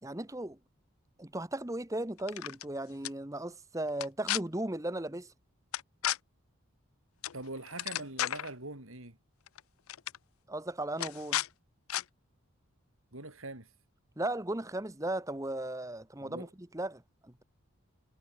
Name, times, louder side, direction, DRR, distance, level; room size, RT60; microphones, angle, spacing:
voice 1, 0.0-0.6 1.2-5.3 10.5-11.4 14.2-17.4, right 1 dB, 15° right, 1.0 m, -36 dB
sound 1, 2.2-2.7 3.0-3.1 3.9-4.4 5.7-6.2 7.2-7.4 7.7-8.5 9.5-9.6 9.9-10.2 11.0-11.5 11.9-12.0, left 12 dB, 80° left, 0.5 m, -33 dB
voice 2, 7.3-9.2 13.1-13.7 16.2-16.5, right 2 dB, 75° right, 5.4 m, -43 dB
head